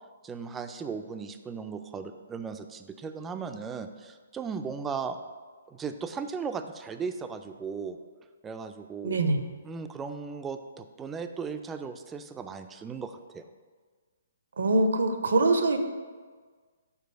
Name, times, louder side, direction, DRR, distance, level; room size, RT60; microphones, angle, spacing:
voice 1, 0.2-5.2 5.7-8.0 8.4-9.2 9.6-13.4, right 5 dB, 15° right, 8 dB, 0.3 m, -37 dB
voice 2, 9.0-9.4 14.6-15.8, right 2 dB, 65° right, 7 dB, 0.6 m, -23 dB
4.7 x 4.5 x 5.0 m, 1.5 s
figure-of-eight pair, 130°, 0 cm